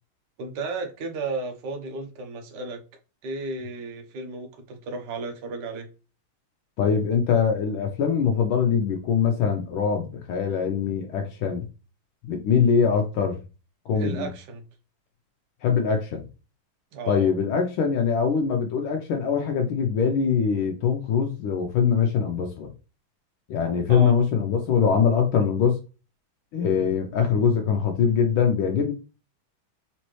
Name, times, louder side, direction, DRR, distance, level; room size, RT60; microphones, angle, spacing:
voice 1, 0.4-2.8 3.2-5.9 13.9-14.6 16.9-17.3 23.9-24.1, right 3 dB, 60° right, 1.4 m, -33 dB
voice 2, 6.8-11.6 12.3-13.4 13.9-14.3 15.6-16.2 17.1-22.7 23.5-25.8 26.5-28.9, left 6 dB, 80° left, 1.5 m, -23 dB
4.2 x 3.7 x 3.0 m
omnidirectional pair, 2.3 m